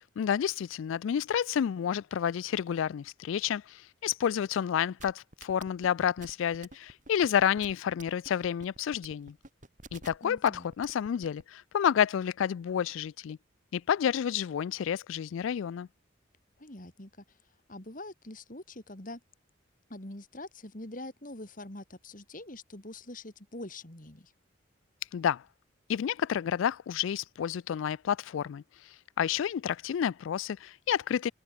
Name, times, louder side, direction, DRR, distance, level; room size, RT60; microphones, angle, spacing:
voice 1, 0.2-9.4 9.9-13.4 13.7-15.9 25.1-25.4 25.9-31.3, left 8 dB, 75° left, 0.3 m, -30 dB
sound 1, 5.0-11.4, right 3 dB, 40° right, 4.7 m, -49 dB
voice 2, 10.2-10.7 16.6-17.4 17.7-19.2 19.9-24.3, left 1 dB, 40° left, 2.8 m, -44 dB
open air
head